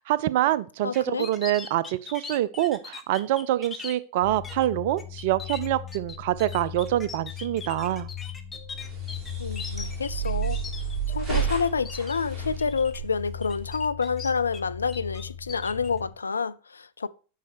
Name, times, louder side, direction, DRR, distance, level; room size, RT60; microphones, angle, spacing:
voice 1, 0.0-8.1, right 14 dB, 50° right, 0.4 m, -26 dB
voice 2, 0.8-1.3 9.4-10.6 11.1-17.1, left 5 dB, 75° left, 0.3 m, -28 dB
sound 1, 0.9-3.9 4.4-4.7 5.0-11.4 11.6-12.2 12.6-13.0 13.4-14.6 14.9-15.9, left 5 dB, 15° left, 0.9 m, -40 dB
sound 2, 4.2-16.1, left 10 dB, 35° left, 2.4 m, -39 dB
sound 3, 8.7-13.7, right 9 dB, 25° right, 3.0 m, -32 dB
8.3 x 5.5 x 4.6 m
figure-of-eight pair, 90°, 0 cm